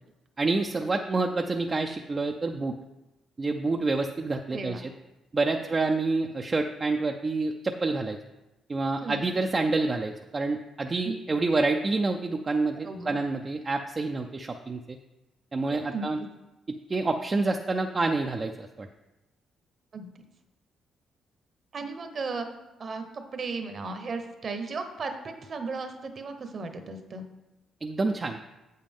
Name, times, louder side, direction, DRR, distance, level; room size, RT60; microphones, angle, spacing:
voice 1, 0.4-2.8 3.4-4.9 5.3-8.2 8.7-15.0 15.5-16.2 16.9-18.9 27.8-28.4, right 3 dB, 30° right, 3 dB, 0.5 m, -28 dB
voice 2, 12.8-13.2 15.7-16.1 19.9-20.1 21.7-22.5 22.8-27.2, right 4 dB, 45° right, 7 dB, 1.0 m, -35 dB
7.9 x 7.5 x 3.6 m, 1.0 s
cardioid pair, 90°, 0 cm